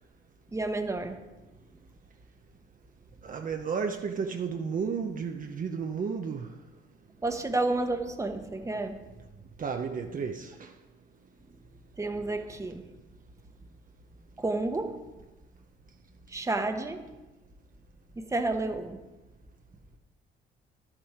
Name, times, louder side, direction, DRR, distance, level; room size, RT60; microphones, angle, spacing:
voice 1, 0.5-1.2 7.2-9.1 12.0-12.9 14.4-15.0 16.3-17.0 18.2-19.0, right 2 dB, 15° right, 1.0 m, -30 dB
voice 2, 3.2-6.6 9.6-10.8, right 6 dB, 45° right, 0.8 m, -33 dB
11.0 x 7.4 x 5.0 m
cardioid pair, 90°, 20 cm